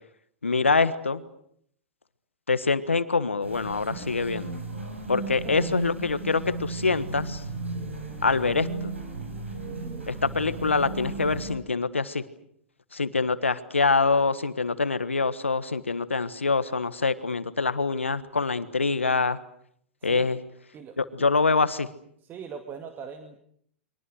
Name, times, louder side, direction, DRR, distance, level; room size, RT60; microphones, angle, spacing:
voice 1, 0.4-1.2 2.5-4.6 5.1-7.4 8.2-8.9 10.1-12.2 12.9-19.4 20.0-20.4 21.0-21.9, left 4 dB, 90° left, 14 dB, 1.5 m, -25 dB
sound 1, 3.4-11.5, right 3 dB, 90° right, 7.1 m, -35 dB
voice 2, 5.4-5.8 9.6-10.1 20.0-20.3 20.7-21.3 22.2-23.4, right 6 dB, 30° right, 7 dB, 2.3 m, -41 dB
29.5 x 24.0 x 6.5 m, 0.67 s
figure-of-eight pair, 100°, 7 cm